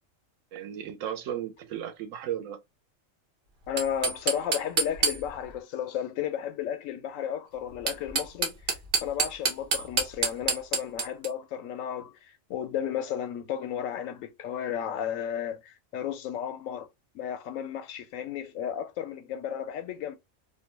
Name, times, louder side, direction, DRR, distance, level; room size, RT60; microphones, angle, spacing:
voice 1, 0.5-2.6, right 10 dB, 80° right, 1.0 m, -35 dB
sound 1, 3.6-5.5 7.7-11.3, right 5 dB, 50° right, 0.7 m, -28 dB
voice 2, 3.7-8.6 9.0-16.9 17.1-20.2, left 9 dB, 85° left, 1.0 m, -33 dB
2.5 x 2.2 x 2.9 m
omnidirectional pair, 1.3 m